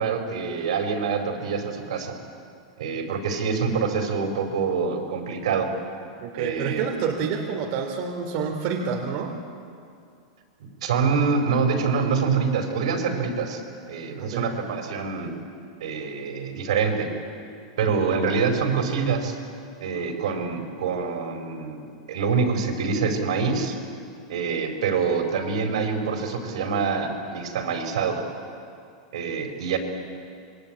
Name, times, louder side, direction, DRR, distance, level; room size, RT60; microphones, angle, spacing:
voice 1, 0.0-2.2 2.8-5.7 6.4-6.9 10.8-13.6 13.9-15.3 15.8-17.1 17.8-19.4 19.8-21.8 22.1-23.7 24.3-28.3 29.1-29.8, right 5 dB, 80° right, 4 dB, 4.8 m, -25 dB
voice 2, 6.2-9.3 14.2-14.6, right 6 dB, 45° right, 1 dB, 2.9 m, -28 dB
26.5 x 23.0 x 9.0 m, 2.4 s
supercardioid pair, 150°, 3 cm